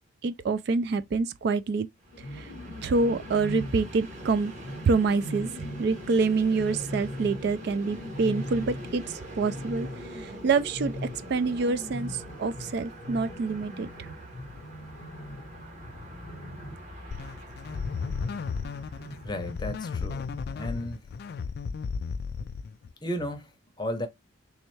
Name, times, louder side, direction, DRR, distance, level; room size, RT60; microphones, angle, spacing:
voice 1, 0.2-1.9 2.4-2.5 2.8-4.5 4.9-5.5 5.8-9.0 9.3-9.9 10.1-11.0 11.3-14.1, right 4 dB, 55° right, 0.3 m, -26 dB
Train, 2.0-20.1, equal, 35° right, 1.4 m, -44 dB
sound 1, 2.1-16.9 17.6-19.5, left 1 dB, 75° left, 0.7 m, -41 dB
sound 2, 17.1-22.9, left 5 dB, 50° left, 0.3 m, -34 dB
voice 2, 19.2-21.0 23.0-24.1, left 1 dB, 20° left, 0.7 m, -34 dB
3.4 x 3.1 x 3.1 m
head